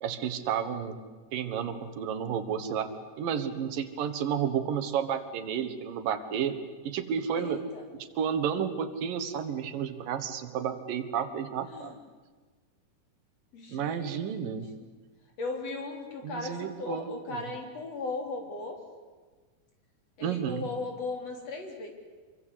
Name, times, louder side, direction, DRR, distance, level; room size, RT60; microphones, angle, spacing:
voice 1, 0.0-1.0 1.3-2.9 3.2-6.6 6.8-7.6 8.0-11.9 13.7-14.7 16.2-17.5 20.2-20.7, right 8 dB, 80° right, 10 dB, 3.2 m, -31 dB
voice 2, 7.4-7.8 11.7-12.0 13.5-14.4 14.8-14.9 15.4-18.8 20.2-21.9, left 3 dB, 50° left, 3 dB, 4.5 m, -37 dB
26.0 x 23.5 x 8.4 m, 1.4 s
omnidirectional pair, 3.9 m